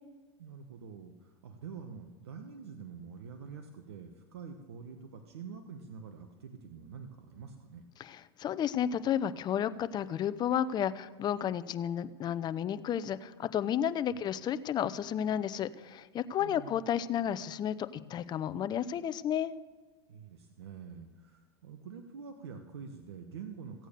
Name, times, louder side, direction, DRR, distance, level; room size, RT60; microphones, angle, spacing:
voice 1, 0.4-7.9 14.1-14.2 16.4-16.8 20.1-23.9, right 6 dB, 90° right, 5 dB, 1.2 m, -46 dB
voice 2, 8.0-19.5, left 9 dB, 35° left, 14 dB, 0.7 m, -32 dB
15.5 x 9.0 x 6.6 m, 1.3 s
hypercardioid pair, 115°, 13 cm